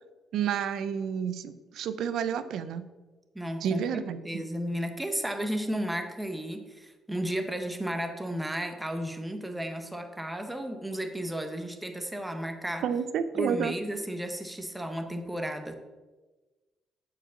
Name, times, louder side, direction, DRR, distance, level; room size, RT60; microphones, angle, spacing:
voice 1, 0.3-2.9 3.6-4.4 12.8-13.7, right 8 dB, 80° right, 12 dB, 0.6 m, -30 dB
voice 2, 3.3-12.8 13.3-15.7, right 1 dB, 10° right, 5 dB, 1.0 m, -33 dB
7.2 x 4.9 x 6.9 m, 1.2 s
cardioid pair, 90°, 0 cm